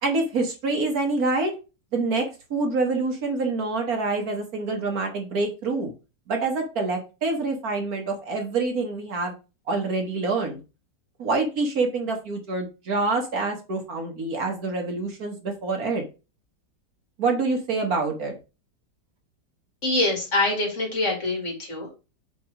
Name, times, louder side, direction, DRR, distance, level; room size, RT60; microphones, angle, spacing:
voice 1, 0.0-1.5 1.9-5.9 6.3-9.3 9.7-10.6 11.2-16.0 17.2-18.3, right 3 dB, 60° right, 3 dB, 1.7 m, -26 dB
voice 2, 19.8-21.9, left 2 dB, 45° left, 1 dB, 2.4 m, -25 dB
5.1 x 4.5 x 4.9 m, 0.30 s
omnidirectional pair, 1.8 m